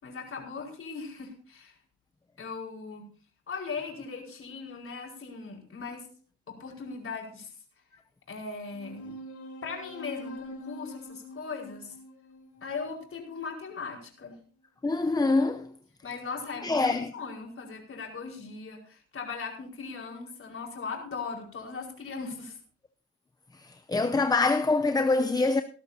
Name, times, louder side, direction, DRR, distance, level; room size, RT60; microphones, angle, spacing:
voice 1, 0.0-1.7 2.4-3.1 3.5-6.1 6.5-7.5 8.3-9.2 9.6-11.9 12.6-14.3 16.0-22.6, left 4 dB, 45° left, 5.0 m, -39 dB
sound 1, 8.7-13.7, left 1 dB, 70° left, 5.0 m, -44 dB
voice 2, 14.8-15.7 16.6-17.1 23.5-25.6, left 3 dB, 15° left, 0.7 m, -25 dB
19.5 x 12.0 x 2.8 m
cardioid pair, 90°, 30 cm